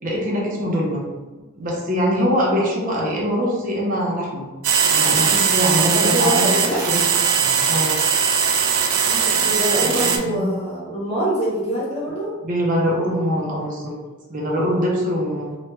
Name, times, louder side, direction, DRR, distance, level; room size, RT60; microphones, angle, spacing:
voice 1, 0.0-1.1 1.6-4.5 4.9-6.5 6.9-7.0 7.4-7.9 10.2-10.5 12.4-13.9 14.3-15.6, equal, 40° right, -3 dB, 0.5 m, -23 dB
sound 1, 4.6-10.2, right 7 dB, 85° right, 0.4 m, -19 dB
voice 2, 5.9-6.8 9.0-12.3, right 1 dB, 30° left, -7 dB, 0.9 m, -24 dB
2.9 x 2.2 x 3.2 m, 1.3 s
head